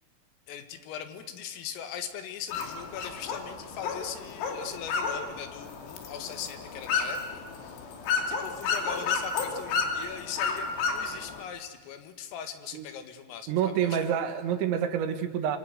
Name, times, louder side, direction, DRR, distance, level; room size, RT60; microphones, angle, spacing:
voice 1, 0.5-7.8 8.2-14.1, left 9 dB, 85° left, 8 dB, 4.5 m, -40 dB
sound 1, 2.5-11.4, left 5 dB, 70° left, 5.0 m, -32 dB
voice 2, 13.5-15.6, right 9 dB, 70° right, 8 dB, 3.5 m, -27 dB
26.5 x 24.0 x 8.1 m, 1.3 s
omnidirectional pair, 5.8 m